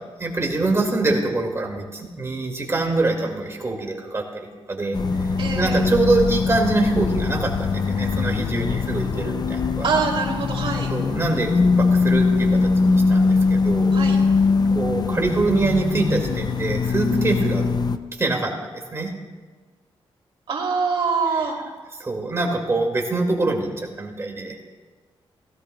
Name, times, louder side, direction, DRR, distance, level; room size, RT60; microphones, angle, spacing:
voice 1, 0.2-5.3 5.6-9.9 10.9-11.5 11.8-13.9 14.7-17.6 18.2-19.1 22.0-24.5, right 2 dB, 30° right, 1 dB, 2.2 m, -24 dB
sound 1, 4.9-18.0, left 4 dB, 45° left, 0.6 m, -21 dB
voice 2, 5.4-5.8 9.8-10.9 13.9-14.2 20.5-21.6, right 5 dB, 65° right, -1 dB, 2.9 m, -24 dB
17.5 x 15.5 x 2.3 m, 1.4 s
cardioid pair, 105°, 10 cm